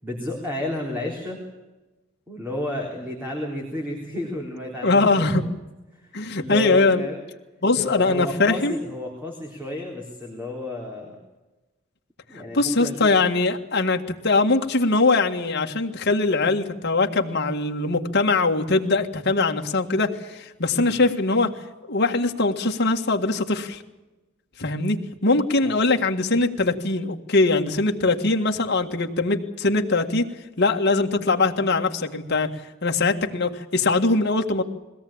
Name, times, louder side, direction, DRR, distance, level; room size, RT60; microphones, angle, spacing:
voice 1, 0.0-1.5 2.3-5.5 6.0-6.1 6.4-7.2 7.8-11.2 12.3-13.1 20.7-20.9 25.6-25.9, left 1 dB, 10° right, -1 dB, 3.7 m, -32 dB
voice 2, 4.8-5.4 6.1-7.0 7.6-8.7 12.5-21.5 21.9-23.8 24.6-30.3 30.6-32.5 32.8-34.6, left 3 dB, 55° left, 3 dB, 1.8 m, -21 dB
22.0 x 17.0 x 8.7 m, 1.1 s
head